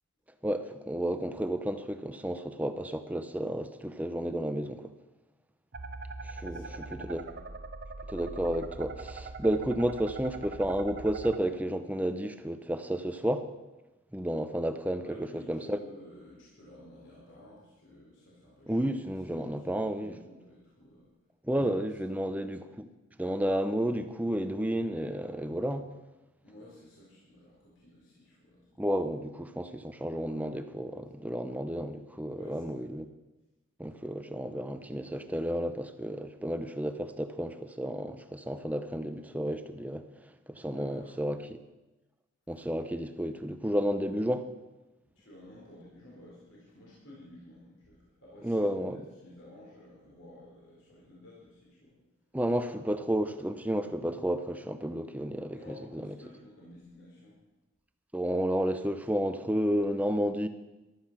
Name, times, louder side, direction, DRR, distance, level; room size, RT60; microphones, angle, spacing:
voice 1, 0.4-4.9 6.2-6.6 6.9-7.2 8.1-13.5 14.1-15.8 18.7-20.1 21.4-22.9 23.2-25.9 28.8-33.1 33.8-40.1 40.5-41.6 42.5-44.5 48.4-49.0 52.3-56.1 58.1-60.5, equal, 5° right, 9 dB, 0.6 m, -31 dB
sound 1, 5.7-11.4, right 3 dB, 50° right, 0.7 m, -42 dB
voice 2, 6.3-7.4 15.0-18.8 19.4-21.1 21.5-21.6 22.1-22.3 26.4-28.8 32.3-32.8 40.7-41.1 45.1-52.0 55.5-57.4, left 1 dB, 65° left, -6 dB, 4.2 m, -52 dB
14.5 x 12.0 x 6.0 m, 1.1 s
head